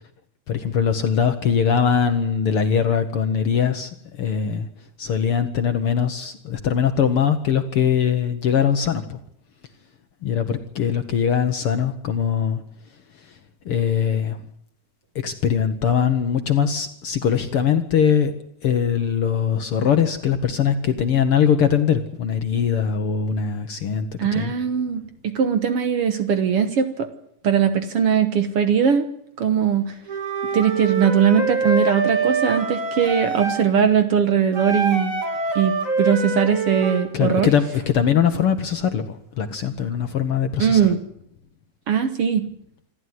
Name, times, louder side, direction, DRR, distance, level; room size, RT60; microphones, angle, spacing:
voice 1, 0.5-3.9 4.2-4.7 5.0-9.2 10.2-12.6 13.6-14.4 15.1-18.3 18.6-24.1 24.3-24.5 37.1-40.9, left 7 dB, 60° left, 8 dB, 1.6 m, -21 dB
voice 2, 24.2-27.1 27.4-29.1 29.4-29.9 30.5-35.1 35.6-37.5 40.6-41.0 41.9-42.5, right 7 dB, 60° right, 9 dB, 1.8 m, -20 dB
Wind instrument woodwind instrument, 30.1-33.7 34.5-37.1, right 3 dB, 25° right, 2.9 m, -25 dB
27.0 x 13.0 x 9.5 m, 0.72 s
omnidirectional pair, 3.5 m